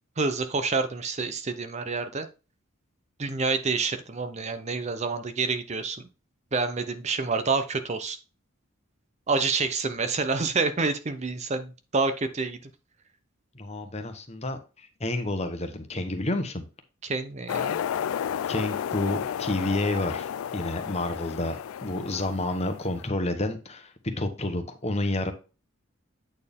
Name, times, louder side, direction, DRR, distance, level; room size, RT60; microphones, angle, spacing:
voice 1, 0.2-2.3 3.2-6.0 6.5-8.2 9.3-12.6 17.0-17.8, right 4 dB, 30° right, 9 dB, 0.6 m, -28 dB
voice 2, 13.5-16.7 18.5-23.9 24.2-25.3, left 2 dB, 30° left, 7 dB, 1.1 m, -30 dB
sound 1, 17.5-23.0, left 8 dB, 75° left, 0.3 m, -32 dB
8.6 x 4.4 x 3.6 m, 0.31 s
head